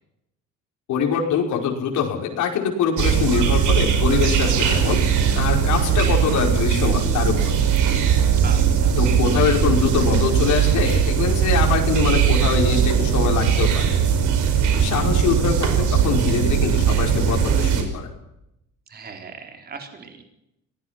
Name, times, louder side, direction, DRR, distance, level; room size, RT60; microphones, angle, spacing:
voice 1, 0.9-7.5 9.0-13.9 14.8-18.1, left 7 dB, 70° left, 1 dB, 5.2 m, -23 dB
sound 1, 3.0-17.8, right 8 dB, 70° right, 5.4 m, -19 dB
voice 2, 8.4-9.0 18.9-20.2, right 5 dB, 30° right, 4 dB, 4.1 m, -38 dB
25.0 x 19.0 x 5.9 m, 0.85 s
cardioid pair, 150°, 31 cm